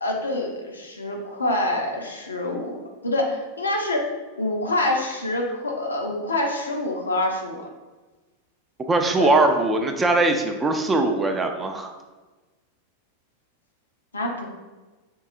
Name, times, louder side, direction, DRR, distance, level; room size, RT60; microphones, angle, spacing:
voice 1, 0.0-2.7 3.0-4.1 4.4-7.7 9.2-9.3 14.1-14.5, left 1 dB, 75° left, 1 dB, 0.6 m, -26 dB
voice 2, 8.9-11.9, right 2 dB, 15° right, 4 dB, 0.4 m, -21 dB
4.5 x 2.7 x 2.4 m, 1.2 s
figure-of-eight pair, 90°, 0 cm